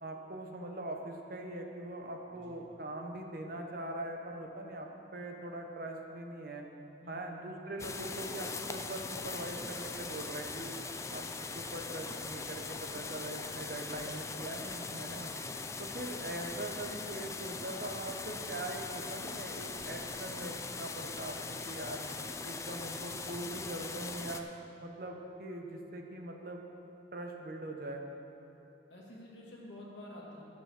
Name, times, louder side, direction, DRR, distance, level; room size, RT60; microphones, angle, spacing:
voice 1, 0.0-6.6 7.1-10.8 11.1-11.2 11.5-15.3 15.8-22.0 22.4-24.5 24.8-26.6 27.1-28.0, right 1 dB, 50° right, 2 dB, 1.0 m, -42 dB
voice 2, 7.0-7.4 15.4-15.8 28.9-30.4, left 1 dB, 75° left, -4 dB, 2.3 m, -50 dB
sound 1, 7.8-24.4, left 4 dB, 15° left, 0.3 m, -41 dB
11.0 x 6.8 x 6.6 m, 2.9 s
head